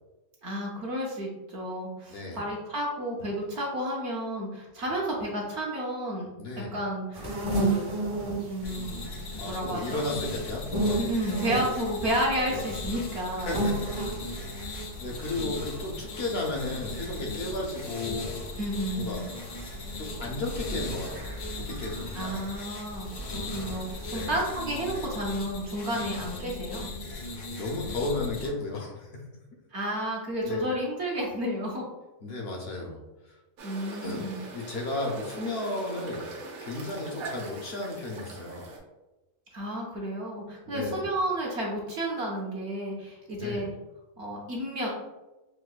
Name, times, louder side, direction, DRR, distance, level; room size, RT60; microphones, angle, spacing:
voice 1, 0.4-6.3 6.7-7.3 7.5-7.9 8.5-10.0 11.0-13.6 18.6-19.3 22.1-26.9 29.7-31.9 33.6-34.4 39.5-43.7 44.2-44.9, right 1 dB, 60° right, -2 dB, 0.9 m, -31 dB
voice 2, 2.1-2.4 6.4-6.7 9.4-11.0 11.2-11.5 12.5-12.7 13.4-13.8 14.2-18.3 18.9-19.2 20.0-22.5 24.1-24.3 27.1-29.2 30.4-30.7 32.2-33.0 34.0-34.3 34.5-36.3 36.6-38.7 40.7-41.1 43.3-43.7, left 2 dB, 60° left, -1 dB, 0.7 m, -34 dB
sound 1, 7.1-24.4, right 2 dB, 25° right, 0.5 m, -35 dB
sound 2, 8.6-28.5, left 2 dB, 80° left, 1.2 m, -38 dB
sound 3, 33.6-38.8, right 3 dB, 80° right, 1.1 m, -42 dB
4.5 x 2.1 x 2.3 m, 1.1 s
omnidirectional pair, 1.5 m